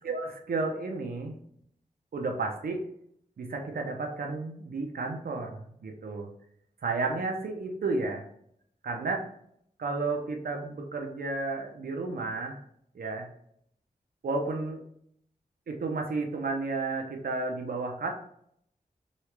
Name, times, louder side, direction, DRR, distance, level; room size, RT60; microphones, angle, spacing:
voice 1, 0.0-1.3 2.1-2.9 3.4-6.3 6.8-8.3 8.8-9.3 9.8-12.6 12.9-13.3 14.2-14.8 15.7-18.1, right 3 dB, 80° right, 2 dB, 0.6 m, -32 dB
3.0 x 2.4 x 3.2 m, 0.68 s
wide cardioid pair, 105°, 15 cm